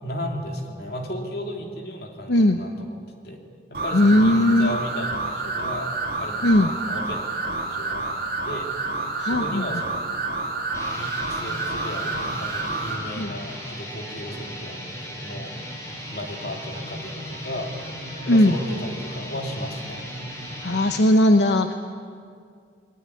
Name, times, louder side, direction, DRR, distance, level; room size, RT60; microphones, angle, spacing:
voice 1, 0.0-3.0 3.2-3.4 3.7-5.9 6.2-7.3 7.7-8.0 8.4-8.7 9.2-10.1 10.9-15.5 16.1-17.7 18.3-20.0, equal, 65° left, 1 dB, 3.2 m, -34 dB
voice 2, 2.3-2.6 3.9-4.8 6.4-6.7 9.2-9.6 13.2-13.3 18.3-18.6 20.6-21.7, left 1 dB, 90° left, 6 dB, 1.0 m, -18 dB
sound 1, 3.7-13.0, right 3 dB, 55° right, 3.4 m, -29 dB
sound 2, 10.6-21.0, equal, 15° left, 5.3 m, -36 dB
20.5 x 19.5 x 9.8 m, 2.2 s
head